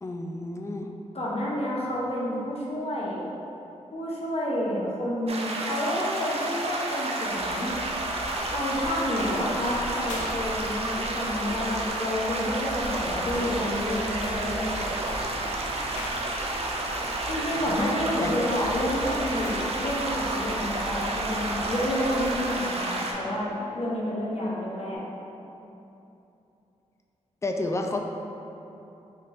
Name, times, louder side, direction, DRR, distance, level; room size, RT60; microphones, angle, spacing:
voice 1, 0.0-0.9 13.9-14.0 17.7-17.8 18.2-18.5 27.4-28.0, left 2 dB, 25° left, 3 dB, 0.3 m, -31 dB
voice 2, 1.1-3.2 3.9-7.7 8.5-15.2 17.3-25.0, left 1 dB, 55° left, -4 dB, 0.8 m, -29 dB
sound 1, 5.3-23.1, right 2 dB, 55° right, 0.5 m, -31 dB
sound 2, 7.3-22.5, left 1 dB, 85° left, 0.5 m, -40 dB
sound 3, 14.7-25.0, right 1 dB, 75° right, 0.8 m, -47 dB
4.1 x 3.4 x 2.5 m, 2.9 s
cardioid pair, 70°, 13 cm